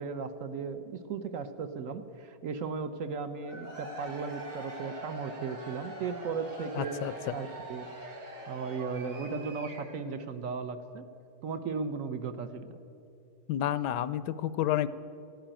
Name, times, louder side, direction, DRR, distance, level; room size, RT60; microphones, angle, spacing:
voice 1, 0.0-7.0 7.3-7.9 8.5-11.0 11.4-12.8, right 5 dB, 60° right, 10 dB, 1.0 m, -36 dB
Cheering / Crowd, 3.4-10.1, right 1 dB, 75° right, 2.8 m, -43 dB
voice 2, 6.8-7.1 13.5-14.9, left 12 dB, 75° left, 15 dB, 1.1 m, -30 dB
15.5 x 9.1 x 8.9 m, 2.7 s
omnidirectional pair, 1.9 m